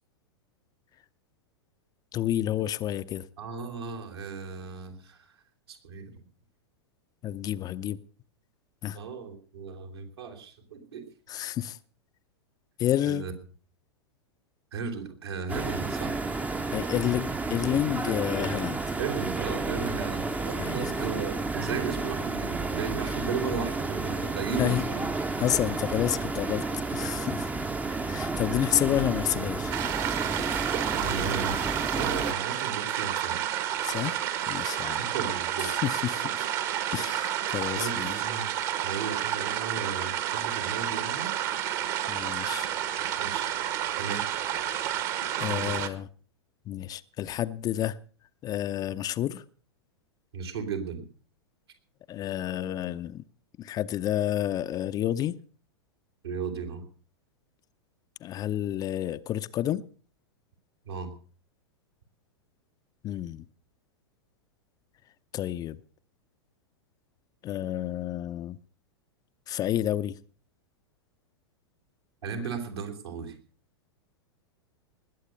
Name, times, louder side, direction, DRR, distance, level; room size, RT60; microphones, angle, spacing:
voice 1, 2.1-3.3 7.2-8.0 8.8-9.0 11.3-11.8 12.8-13.3 16.7-18.9 20.6-20.9 24.6-24.9 25.4-26.6 26.9-27.5 28.0-29.7 33.8-34.2 34.5-35.0 35.6-36.5 36.9-38.2 42.1-42.7 45.4-46.1 46.7-48.0 48.4-49.4 52.1-53.2 53.6-55.4 58.2-59.8 63.0-63.5 65.3-65.8 67.4-68.6 69.5-70.2 72.4-72.5, left 12 dB, 25° left, 0.6 m, -30 dB
voice 2, 3.4-5.3 5.7-6.2 8.9-11.0 13.0-13.3 14.7-16.1 19.0-25.1 30.9-33.5 35.0-35.7 37.7-38.5 38.8-41.3 43.2-43.6 44.0-44.3 45.4-45.8 50.3-51.0 56.2-56.8 60.8-61.1 72.2-73.4, right 5 dB, 70° right, 3.5 m, -35 dB
sound 1, 15.5-32.3, right 3 dB, 10° right, 0.8 m, -31 dB
sound 2, 29.7-45.9, right 11 dB, 45° right, 1.8 m, -30 dB
20.0 x 8.1 x 6.7 m
figure-of-eight pair, 95°, 14 cm